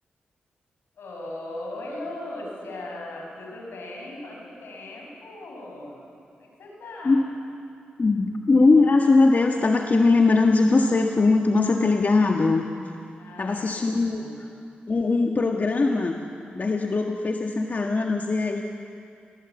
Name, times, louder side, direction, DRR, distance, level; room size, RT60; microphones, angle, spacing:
voice 1, 1.0-6.0 6.4-7.3 13.2-14.4, left 1 dB, 80° left, -1 dB, 6.6 m, -38 dB
voice 2, 8.0-12.6 13.4-14.5 14.9-16.2 16.5-18.6, left 3 dB, 45° left, 2 dB, 1.7 m, -20 dB
27.5 x 18.5 x 8.4 m, 2.5 s
supercardioid pair, 45°, 4 cm